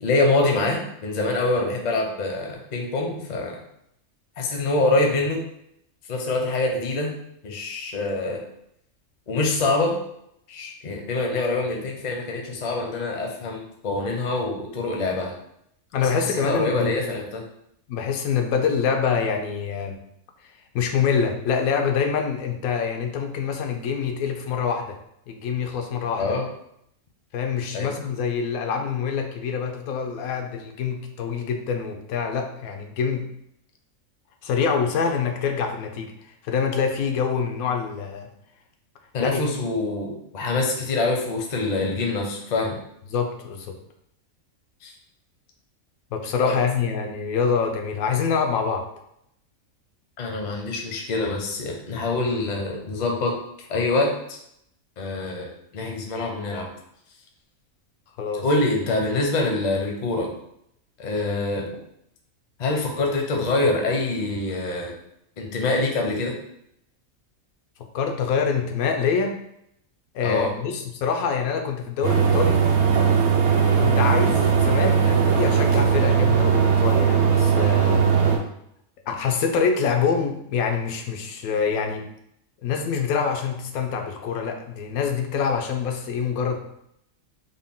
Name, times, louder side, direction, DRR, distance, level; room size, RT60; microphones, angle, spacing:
voice 1, 0.0-3.6 4.4-5.4 6.1-7.1 7.4-8.4 9.3-10.0 10.5-15.3 16.0-17.4 26.2-26.4 27.7-27.9 39.1-42.8 44.8-44.9 46.4-46.6 50.2-53.4 53.7-54.4 55.0-56.7 58.4-60.3 61.0-61.7 62.6-64.9 65.4-66.4 70.2-70.5, left 2 dB, 45° left, 1 dB, 0.5 m, -25 dB
voice 2, 15.9-17.2 17.9-20.0 20.4-25.0 25.3-26.4 27.3-33.2 34.4-38.3 39.2-39.4 43.1-43.7 46.1-48.8 58.2-58.4 67.9-69.3 70.1-72.6 73.8-78.4 79.1-82.1 82.6-86.6, left 6 dB, 90° left, 4 dB, 1.1 m, -25 dB
sound 1, 72.0-78.4, right 6 dB, 60° right, 0.8 m, -19 dB
3.7 x 2.2 x 3.6 m, 0.75 s
omnidirectional pair, 1.5 m